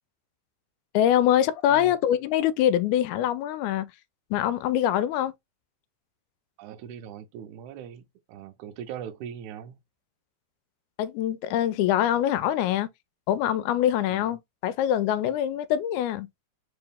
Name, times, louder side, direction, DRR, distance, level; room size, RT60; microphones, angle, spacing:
voice 1, 0.9-3.9 4.3-5.3 11.0-12.9 13.3-16.3, left 11 dB, 85° left, 2.0 m, -24 dB
voice 2, 6.6-9.8 14.1-14.3, right 9 dB, 85° right, 2.1 m, -40 dB
4.8 x 2.9 x 3.5 m
omnidirectional pair, 3.4 m